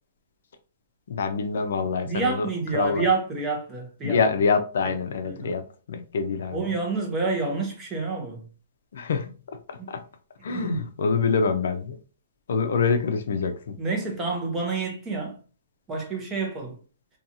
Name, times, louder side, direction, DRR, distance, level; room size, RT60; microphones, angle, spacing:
voice 1, 1.1-2.5 2.7-3.1 4.0-6.6 8.9-9.3 9.7-10.0 10.4-12.0 12.5-13.8, left 5 dB, 65° left, 0.4 m, -25 dB
voice 2, 2.0-4.2 4.8-4.9 5.2-5.5 6.5-8.5 9.8-9.9 10.5-10.8 13.8-15.4 15.9-16.8, right 4 dB, 15° right, 0.7 m, -28 dB
2.6 x 2.3 x 2.6 m
hypercardioid pair, 165°, 0 cm